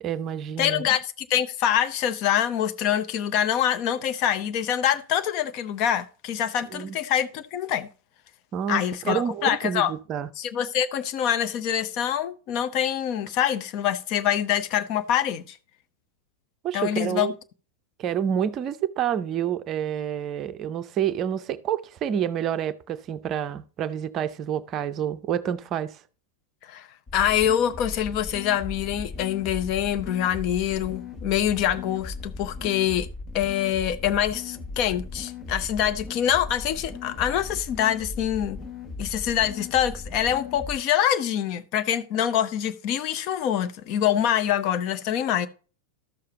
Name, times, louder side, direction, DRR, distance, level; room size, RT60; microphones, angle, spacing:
voice 1, 0.0-0.9 6.7-7.0 8.5-10.3 16.6-17.3 18.0-26.0, right 9 dB, 30° right, 0.5 m, -28 dB
voice 2, 0.6-7.9 8.7-9.9 10.4-15.6 16.7-17.3 26.6-26.9 27.1-33.1 33.3-38.6 39.0-45.5, left 10 dB, 40° left, 0.7 m, -25 dB
sound 1, 27.1-40.8, left 3 dB, 20° left, 1.2 m, -38 dB
12.5 x 6.6 x 2.8 m
figure-of-eight pair, 90°, 0 cm